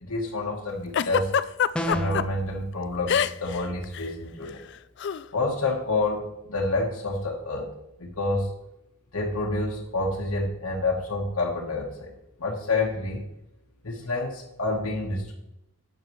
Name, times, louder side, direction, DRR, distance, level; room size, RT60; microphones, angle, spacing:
voice 1, 0.0-1.3 1.8-4.6 5.3-7.7 8.0-8.5 9.1-12.1 12.4-13.2 13.8-15.3, left 2 dB, 80° left, -2 dB, 1.3 m, -28 dB
Giggle, 0.9-2.2 3.1-3.6 3.8-4.1 5.0-5.2, left 8 dB, 50° left, 0.3 m, -24 dB
sound 1, 1.7-2.3, equal, 5° left, 0.7 m, -29 dB
12.0 x 8.2 x 3.1 m, 0.87 s
head